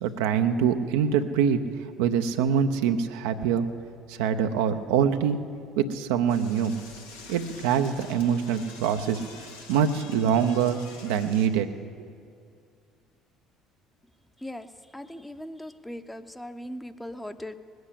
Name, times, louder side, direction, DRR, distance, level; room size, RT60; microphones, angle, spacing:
voice 1, 0.0-1.6 2.0-3.7 4.1-5.4 5.8-6.8 7.3-9.2 9.7-11.7 12.0-12.1, right 7 dB, 75° right, 7 dB, 0.6 m, -24 dB
Door / Toilet flush, 6.3-11.5, left 4 dB, 85° left, 1.5 m, -46 dB
voice 2, 14.4-17.6, left 1 dB, 5° left, 9 dB, 0.8 m, -39 dB
19.5 x 7.8 x 8.4 m, 2.2 s
hypercardioid pair, 60°, 0 cm